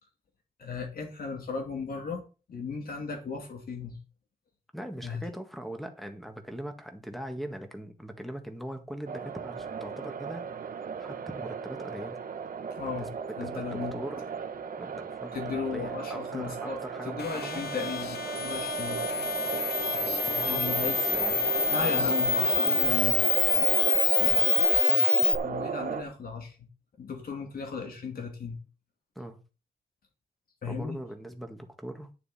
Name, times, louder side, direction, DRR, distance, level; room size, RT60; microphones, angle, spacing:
voice 1, 0.6-2.2 2.5-4.0 5.0-5.2 12.7-13.1 13.4-13.9 15.3-16.8 17.0-19.0 20.4-21.0 21.7-23.2 25.4-26.6 27.0-28.6 30.6-31.0, left 5 dB, 65° left, 3 dB, 2.9 m, -36 dB
voice 2, 4.7-10.4 11.0-12.2 12.9-14.2 14.8-15.3 15.6-17.6 19.9-21.5 24.2-24.5 29.1-29.4 30.7-32.1, equal, ahead, 6 dB, 1.7 m, -41 dB
sound 1, 9.1-26.0, right 6 dB, 60° right, 1.3 m, -35 dB
sound 2, 17.2-25.1, left 7 dB, 85° left, 1.1 m, -39 dB
Camera, 18.4-25.4, left 4 dB, 30° left, 0.9 m, -26 dB
11.0 x 9.6 x 4.3 m, 0.34 s
wide cardioid pair, 155°, 16 cm